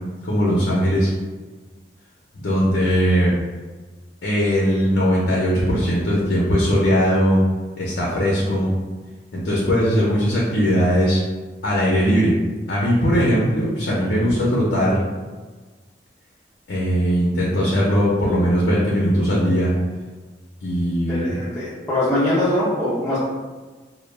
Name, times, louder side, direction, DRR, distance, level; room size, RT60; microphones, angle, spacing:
voice 1, 0.2-1.1 2.3-3.3 4.2-7.4 7.8-8.7 9.3-11.2 11.6-12.3 12.7-15.0 16.7-19.7 20.6-21.4, equal, 80° left, -5 dB, 0.5 m, -19 dB
voice 2, 21.1-23.2, left 1 dB, 15° left, -10 dB, 0.4 m, -22 dB
2.1 x 2.1 x 3.1 m, 1.3 s
head